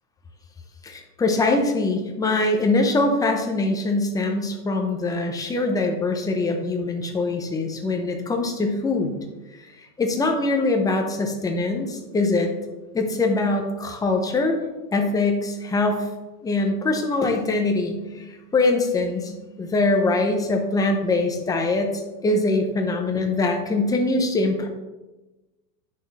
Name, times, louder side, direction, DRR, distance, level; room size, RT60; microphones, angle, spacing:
voice 1, 0.8-9.1 9.8-12.5 12.9-14.6 14.9-16.1 16.4-21.9 22.2-24.7, left 2 dB, 10° left, 3 dB, 0.6 m, -23 dB
9.0 x 6.4 x 4.1 m, 1.1 s
supercardioid pair, 160°, 47 cm